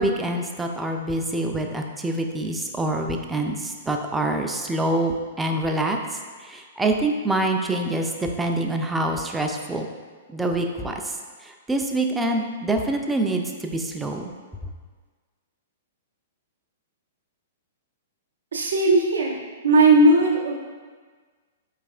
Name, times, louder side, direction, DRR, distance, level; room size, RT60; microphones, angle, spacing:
voice 1, 0.0-6.0 6.4-9.8 10.3-10.9 11.5-14.3, right 2 dB, 10° right, 3 dB, 0.3 m, -25 dB
voice 2, 18.5-19.4 19.6-20.5, right 2 dB, 70° right, -1 dB, 0.5 m, -17 dB
4.6 x 3.2 x 2.4 m, 1.5 s
figure-of-eight pair, 110°, 0 cm